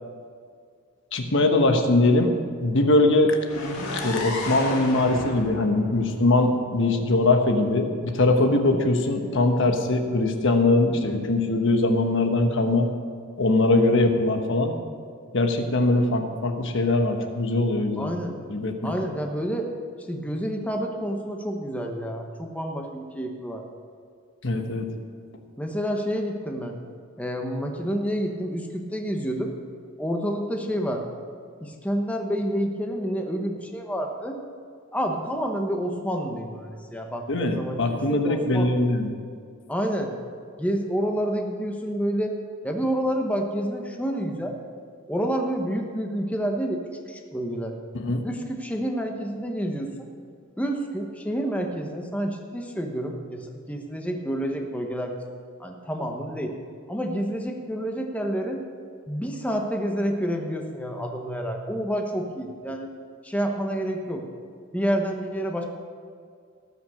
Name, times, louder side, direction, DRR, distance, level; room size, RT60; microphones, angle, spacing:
voice 1, 1.1-3.4 4.0-12.9 13.4-14.7 15.3-18.1 18.5-18.9 24.4-24.9 37.3-39.1 47.9-48.2, left 2 dB, 60° left, 5 dB, 1.2 m, -22 dB
sound 1, 3.5-7.3, left 1 dB, 80° left, 2.0 m, -33 dB
voice 2, 18.0-18.3 18.8-19.7 20.1-23.6 25.6-26.8 27.2-29.5 30.0-31.0 31.6-34.4 34.9-38.7 39.7-40.1 40.6-42.3 42.6-44.5 45.1-46.8 47.1-47.7 48.2-50.1 50.6-55.1 55.6-56.5 56.9-58.6 59.1-62.9 63.2-64.2 64.7-65.6, equal, 5° left, 2 dB, 1.1 m, -28 dB
18.0 x 6.1 x 6.5 m, 2.1 s
head